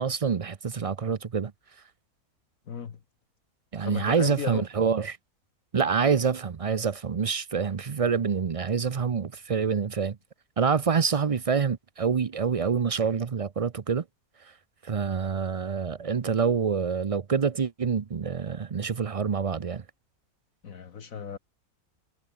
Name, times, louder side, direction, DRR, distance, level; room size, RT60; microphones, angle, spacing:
voice 1, 0.0-1.5 3.7-5.2 5.7-10.2 10.6-14.0 14.8-19.8, right 6 dB, 65° right, 0.3 m, -26 dB
voice 2, 2.7-3.0 3.8-4.6 20.6-21.4, left 7 dB, 65° left, 1.7 m, -35 dB
omnidirectional pair, 1.6 m